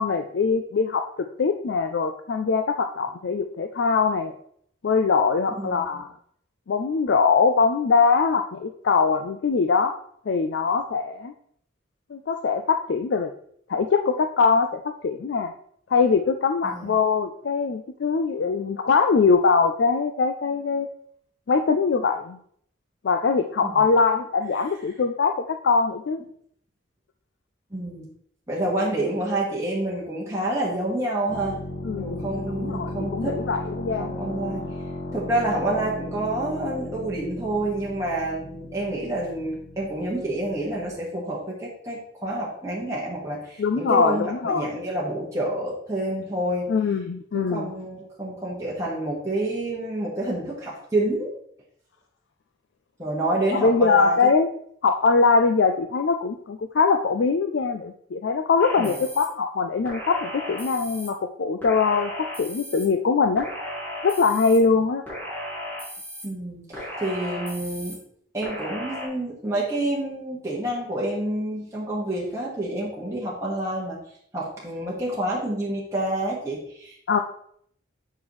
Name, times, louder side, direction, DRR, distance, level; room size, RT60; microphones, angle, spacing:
voice 1, 0.0-4.3 4.8-6.1 6.7-10.0 10.3-11.3 12.1-13.3 13.7-15.5 15.9-20.9 21.5-22.4 23.0-26.2 31.8-32.3 32.6-34.2 34.4-34.6 43.6-44.7 46.7-47.7 53.5-54.5 54.8-63.5 64.0-65.0 77.1-77.2, left 4 dB, 65° left, 6 dB, 0.4 m, -22 dB
voice 2, 5.6-6.0 16.6-17.0 23.6-23.7 27.7-28.1 28.5-31.6 32.0-33.4 33.9-34.7 35.1-46.7 47.3-51.3 53.0-54.3 58.8-59.0 66.2-68.0 68.3-74.0 74.3-77.0, right 1 dB, 15° right, -6 dB, 1.5 m, -28 dB
sound 1, 31.3-40.9, left 1 dB, 40° left, 1.8 m, -35 dB
sound 2, 58.6-59.3 59.8-61.1 61.6-62.8 63.4-64.6 65.1-66.2 66.7-68.0 68.4-69.1, equal, 10° left, 3.0 m, -35 dB
7.8 x 5.6 x 3.1 m, 0.66 s
head